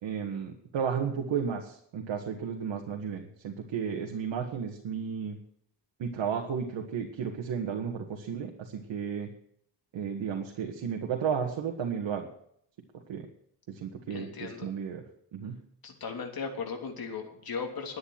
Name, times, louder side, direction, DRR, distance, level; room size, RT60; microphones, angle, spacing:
voice 1, 0.0-5.4 6.0-9.3 9.9-12.3 13.1-13.3 13.7-15.0 15.3-15.6, right 7 dB, 75° right, 1 dB, 1.9 m, -33 dB
voice 2, 14.1-14.7 15.8-18.0, left 5 dB, 50° left, 2 dB, 3.2 m, -37 dB
11.5 x 9.7 x 7.6 m, 0.68 s
cardioid pair, 125°, 44 cm